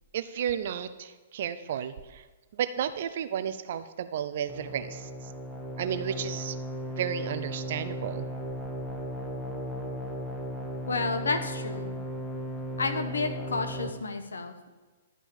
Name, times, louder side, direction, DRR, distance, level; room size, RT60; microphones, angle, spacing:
voice 1, 0.1-2.2 2.5-5.1 5.8-6.5 7.0-8.3, right 9 dB, 50° right, 12 dB, 0.7 m, -32 dB
sound 1, 4.5-13.9, equal, 10° left, 1.4 m, -36 dB
voice 2, 10.9-12.0 12.8-14.7, left 3 dB, 70° left, 8 dB, 1.1 m, -31 dB
11.5 x 5.6 x 7.4 m, 1.3 s
figure-of-eight pair, 115°, 0 cm